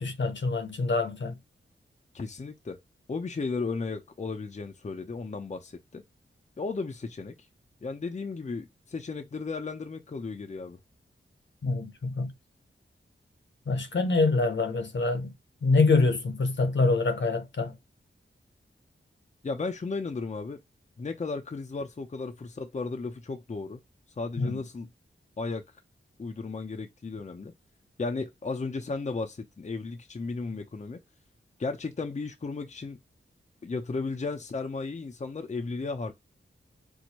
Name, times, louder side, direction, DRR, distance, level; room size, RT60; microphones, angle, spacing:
voice 1, 0.0-1.4 11.6-12.3 13.7-15.3 15.6-17.8 24.4-24.5, left 3 dB, 60° left, 0.9 m, -25 dB
voice 2, 2.1-2.8 3.1-6.0 6.6-7.3 7.8-10.8 19.4-20.6 21.0-23.8 24.2-24.9 25.4-25.6 26.2-27.5 28.0-31.0 31.6-33.0 33.6-36.1, left 4 dB, 35° left, 0.6 m, -34 dB
4.4 x 2.2 x 2.8 m
cardioid pair, 45°, 21 cm